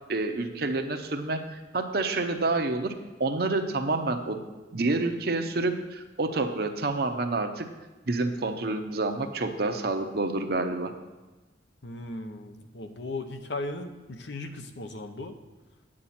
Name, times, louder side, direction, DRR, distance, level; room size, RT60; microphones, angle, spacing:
voice 1, 0.1-2.9 3.2-4.4 4.7-7.7 8.1-10.9, right 2 dB, 55° right, 6 dB, 0.8 m, -28 dB
voice 2, 11.8-15.4, left 2 dB, 70° left, 7 dB, 0.9 m, -37 dB
9.7 x 8.7 x 4.3 m, 1.2 s
head